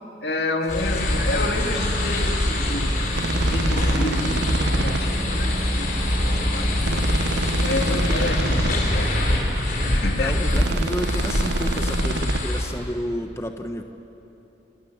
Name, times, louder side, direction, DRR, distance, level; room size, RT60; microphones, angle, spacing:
voice 1, 0.2-3.1 3.4-6.9 7.6-9.4 9.9-10.4, left 2 dB, 75° left, 3 dB, 2.1 m, -30 dB
sound 1, 0.7-12.6, left 1 dB, 50° left, 5.3 m, -23 dB
sound 2, 3.1-5.0 6.8-8.7 10.5-12.4, right 3 dB, 80° right, 0.7 m, -29 dB
voice 2, 10.2-13.8, left 1 dB, 15° left, 5 dB, 1.0 m, -31 dB
29.0 x 23.0 x 7.3 m, 2.9 s
head